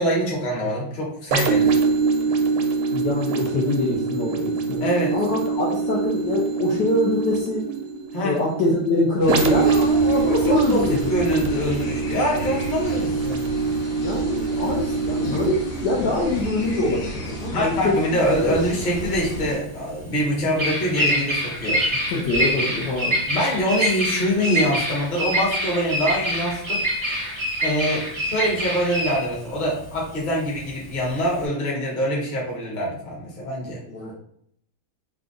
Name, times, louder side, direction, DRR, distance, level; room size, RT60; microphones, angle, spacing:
voice 1, 0.0-1.7 4.8-5.1 8.1-8.3 10.5-10.8 11.1-13.4 17.5-21.8 23.3-26.8 27.6-33.8, equal, 30° left, -5 dB, 1.1 m, -24 dB
sound 1, 1.3-18.8 19.4-19.5, right 4 dB, 80° right, 1.4 m, -25 dB
voice 2, 2.9-4.8 5.1-7.6 8.2-11.1 14.0-17.9 22.1-23.2 33.9-34.1, left 2 dB, 65° left, -4 dB, 1.3 m, -24 dB
sound 2, 9.2-19.6, right 1 dB, 80° left, 2.0 m, -33 dB
Bird vocalization bird call bird song, 18.2-31.4, equal, 45° right, 0.3 m, -26 dB
3.9 x 2.3 x 3.7 m, 0.67 s
omnidirectional pair, 2.3 m